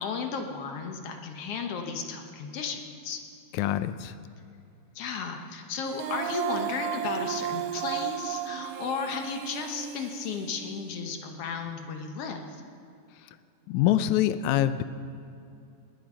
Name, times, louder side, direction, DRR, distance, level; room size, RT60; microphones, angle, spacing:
voice 1, 0.0-3.2 4.9-12.6, left 5 dB, 65° left, 4 dB, 1.7 m, -34 dB
voice 2, 3.5-4.1 13.7-14.8, left 12 dB, 80° left, 13 dB, 1.9 m, -25 dB
Female singing, 5.8-11.0, right 11 dB, 85° right, 1.4 m, -34 dB
19.5 x 7.9 x 6.2 m, 2.6 s
omnidirectional pair, 3.5 m